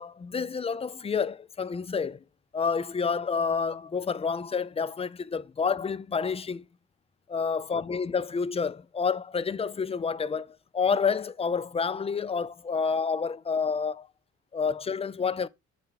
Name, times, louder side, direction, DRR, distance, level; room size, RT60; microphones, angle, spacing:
voice 1, 0.0-2.2 2.5-6.7 7.3-14.1 14.5-15.5, left 5 dB, 20° left, 0.4 m, -29 dB
7.8 x 3.4 x 4.6 m
cardioid pair, 90°, 30 cm